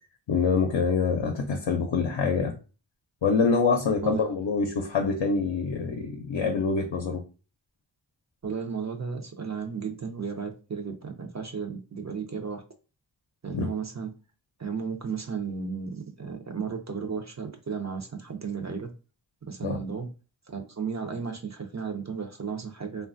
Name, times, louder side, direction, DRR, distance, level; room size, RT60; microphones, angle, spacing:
voice 1, 0.3-2.5 3.2-7.2 13.5-13.7 19.6-19.8, left 5 dB, 70° left, 0.6 m, -25 dB
voice 2, 8.4-12.6 13.4-14.1 14.6-18.9 19.4-20.1 20.5-23.1, right 5 dB, 40° right, 0.5 m, -34 dB
3.0 x 2.2 x 2.5 m
wide cardioid pair, 55°, 45 cm